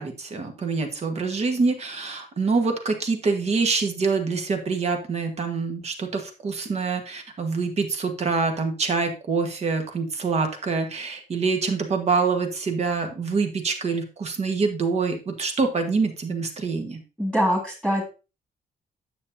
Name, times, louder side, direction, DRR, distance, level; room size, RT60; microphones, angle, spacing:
voice 1, 0.0-17.0, right 4 dB, 45° right, 5 dB, 1.4 m, -25 dB
voice 2, 17.2-18.1, equal, 5° right, -3 dB, 2.0 m, -23 dB
9.4 x 7.2 x 2.7 m, 0.32 s
wide cardioid pair, 145°, 16 cm